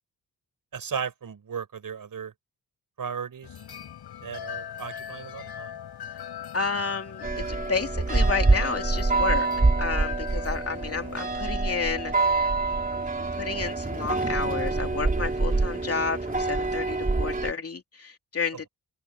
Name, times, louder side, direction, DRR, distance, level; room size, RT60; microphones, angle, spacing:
voice 1, 0.7-2.3 3.0-3.5 4.2-5.8 15.5-15.7, right 7 dB, 60° right, 7.5 m, -35 dB
sound 1, 3.4-11.4, left 9 dB, 85° left, 6.2 m, -40 dB
voice 2, 6.5-9.5 9.8-12.5 12.9-18.7, left 5 dB, 40° left, 2.9 m, -31 dB
sound 2, 7.2-17.5, right 3 dB, 20° right, 3.3 m, -26 dB
wide cardioid pair, 110°, 38 cm